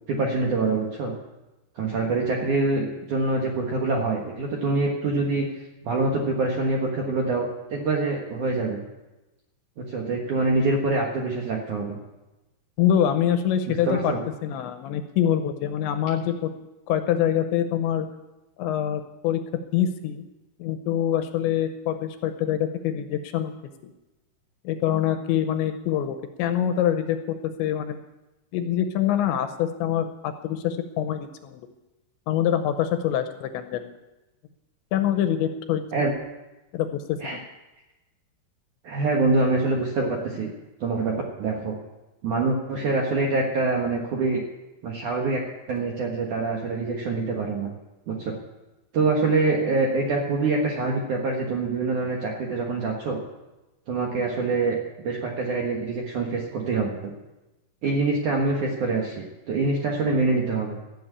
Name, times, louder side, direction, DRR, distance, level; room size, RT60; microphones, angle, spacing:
voice 1, 0.1-1.1 1.8-5.5 5.8-8.8 9.8-12.0 13.7-14.2 35.9-36.1 37.2-37.4 38.8-40.5 40.8-41.8 42.2-44.4 44.8-47.7 48.1-48.3 48.9-53.2 53.9-57.1 57.8-60.8, right 3 dB, 70° right, 0 dB, 1.9 m, -25 dB
voice 2, 12.8-14.2 14.4-16.5 16.9-18.1 18.6-20.3 20.6-23.5 24.6-28.0 28.5-31.6 32.3-33.9 34.9-35.8 36.7-37.4, left 10 dB, 80° left, 9 dB, 2.8 m, -25 dB
16.0 x 7.7 x 8.6 m, 1.0 s
omnidirectional pair, 5.6 m